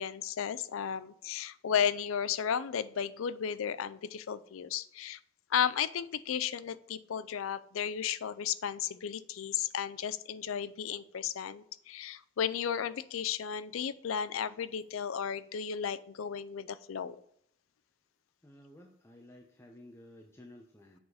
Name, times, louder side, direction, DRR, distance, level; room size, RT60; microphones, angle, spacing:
voice 1, 0.0-5.2 5.5-17.2, left 8 dB, 80° left, 15 dB, 0.4 m, -34 dB
voice 2, 18.4-21.0, left 1 dB, 10° left, 2 dB, 0.5 m, -54 dB
7.1 x 4.0 x 4.8 m, 0.71 s
head